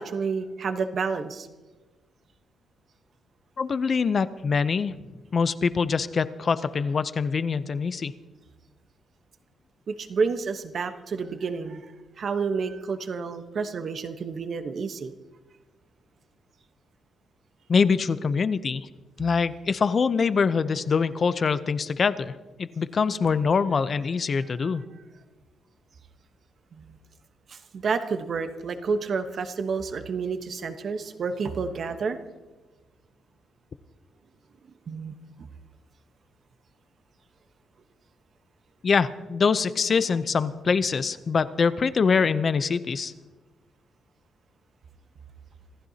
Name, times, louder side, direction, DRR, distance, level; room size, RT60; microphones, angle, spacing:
voice 1, 0.0-1.5 9.9-11.9 12.2-15.1 24.4-24.8 26.7-27.0 27.5-32.2 34.9-35.1, right 5 dB, 50° right, 8 dB, 1.1 m, -30 dB
voice 2, 3.6-5.0 5.3-8.1 17.7-18.9 19.2-22.3 22.6-24.8 38.8-43.1, left 5 dB, 40° left, 14 dB, 0.6 m, -24 dB
26.0 x 15.0 x 2.9 m, 1.2 s
cardioid pair, 125°, 0 cm